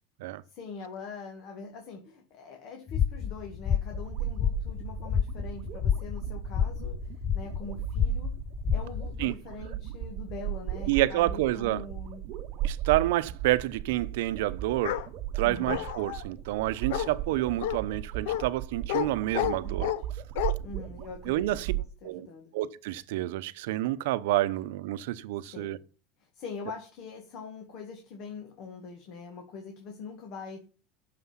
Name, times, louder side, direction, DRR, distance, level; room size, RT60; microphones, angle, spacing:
voice 1, 0.5-8.4 8.7-12.2 15.4-15.8 19.5-19.9 20.6-21.5 22.0-22.5 25.4-25.8 26.2-30.7, left 4 dB, 45° left, 2.0 m, -43 dB
sound 1, 2.9-9.3, left 9 dB, 25° left, 0.5 m, -30 dB
sound 2, 3.9-21.8, right 12 dB, 45° right, 1.0 m, -36 dB
voice 2, 10.9-11.8 12.6-15.0 15.4-19.9 21.3-21.7 22.0-22.3 22.5-25.8, right 16 dB, 75° right, 0.8 m, -28 dB
Bark, 14.8-15.1 15.7-16.2 16.9-17.1 17.6-17.8 18.3-18.4 18.9-19.1 19.3-20.0 20.4-20.5, left 13 dB, 75° left, 0.9 m, -30 dB
9.7 x 6.8 x 5.7 m
supercardioid pair, 160°, 0 cm